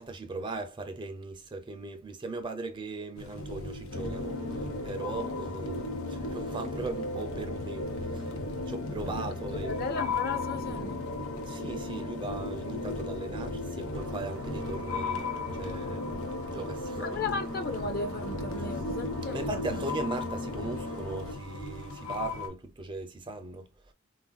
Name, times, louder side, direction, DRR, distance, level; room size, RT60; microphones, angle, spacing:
voice 1, 0.0-4.4 4.8-7.9 8.1-8.2 8.7-9.7 11.5-17.3 19.3-23.7, right 2 dB, 25° right, 0.4 m, -38 dB
sound 1, 3.2-22.5, left 3 dB, 90° left, 0.8 m, -38 dB
sound 2, 3.9-21.3, left 2 dB, 70° left, 1.1 m, -37 dB
voice 2, 9.6-11.0 17.0-19.9, left 3 dB, 45° left, 0.5 m, -35 dB
sound 3, 13.9-22.1, right 5 dB, 90° right, 0.6 m, -49 dB
3.7 x 2.5 x 2.2 m
head